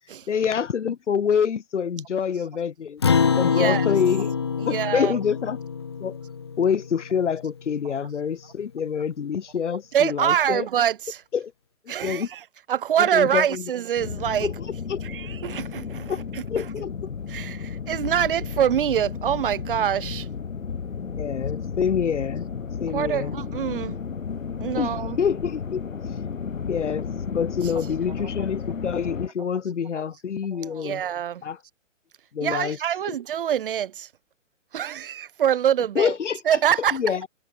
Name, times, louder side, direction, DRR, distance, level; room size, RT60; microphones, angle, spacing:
voice 1, 0.3-3.0 3.4-4.3 4.7-5.6 6.0-6.2 6.6-10.7 11.3-11.5 11.9-12.3 13.0-13.7 14.4-14.5 14.9-15.0 16.1-16.2 16.5-17.1 21.2-22.5 22.8-23.3 24.8-25.8 26.7-31.0 31.4-31.6 32.3-32.8 33.1-33.2 36.0-36.4 36.9-37.3, left 7 dB, 65° left, 7.1 m, -26 dB
Acoustic guitar, 3.0-7.7, left 6 dB, 20° left, 0.5 m, -25 dB
voice 2, 3.4-3.8 4.7-5.2 9.9-11.2 11.9-12.4 12.7-14.5 15.0-16.4 17.3-20.3 22.9-24.0 24.6-25.2 28.2-28.3 30.6-31.4 32.4-34.1 34.7-36.1 36.5-37.0, right 10 dB, 45° right, 2.7 m, -25 dB
sound 1, 14.0-29.3, left 6 dB, 90° left, 5.6 m, -33 dB
hypercardioid pair, 165°, 38 cm